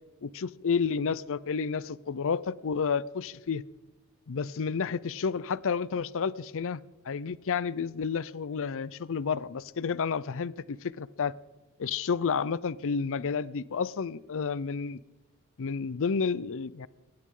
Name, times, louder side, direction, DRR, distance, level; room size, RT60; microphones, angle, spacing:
voice 1, 0.2-3.6 4.3-11.3 11.8-15.0 15.6-16.9, left 5 dB, 65° left, 0.5 m, -31 dB
21.0 x 17.5 x 3.8 m
head